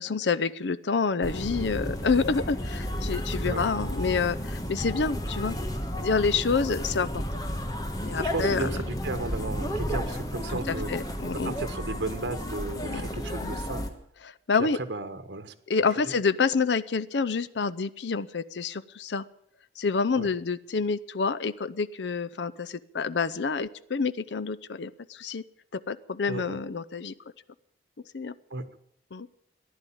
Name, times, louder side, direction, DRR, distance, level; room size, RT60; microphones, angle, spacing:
voice 1, 0.0-5.6 6.0-7.1 8.1-8.8 10.7-11.5 12.8-13.0 13.4-13.5 14.5-14.8 15.7-19.2 19.8-25.4 25.7-27.1 28.1-28.3 29.1-29.3, left 4 dB, 80° left, 13 dB, 0.6 m, -28 dB
sound 1, 1.2-13.9, equal, 20° left, 1.4 m, -32 dB
voice 2, 8.2-10.9 11.3-13.9 14.6-15.5 15.9-16.2 20.1-20.3 26.3-26.6 28.5-28.6, right 2 dB, 85° right, 8 dB, 1.3 m, -34 dB
14.5 x 11.0 x 8.7 m, 0.71 s
head